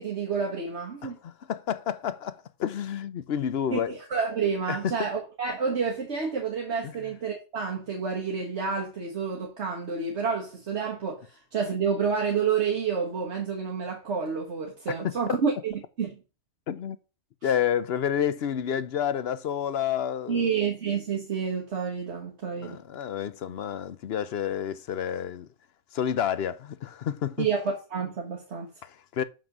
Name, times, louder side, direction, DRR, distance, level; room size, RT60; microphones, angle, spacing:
voice 1, 0.0-1.2 3.7-16.2 17.4-17.5 20.3-22.8 27.4-28.7, right 6 dB, 65° right, 1.7 m, -29 dB
voice 2, 1.0-4.0 4.7-5.1 6.8-7.0 15.0-15.1 16.7-17.0 17.4-20.5 22.6-25.5 25.9-27.5 28.8-29.2, left 9 dB, 60° left, 0.9 m, -29 dB
6.7 x 6.0 x 6.1 m
omnidirectional pair, 1.2 m